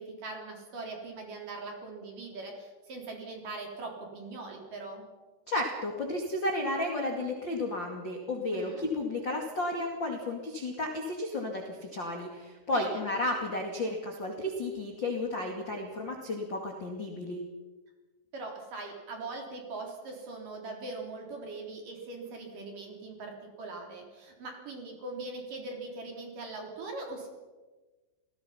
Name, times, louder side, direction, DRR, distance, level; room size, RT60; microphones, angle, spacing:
voice 1, 0.0-5.1 8.5-8.8 12.7-13.0 18.3-27.3, right 3 dB, 45° right, 1 dB, 4.8 m, -41 dB
voice 2, 5.5-17.4, left 2 dB, 35° left, 1 dB, 2.0 m, -33 dB
28.0 x 18.5 x 5.8 m, 1.2 s
omnidirectional pair, 5.7 m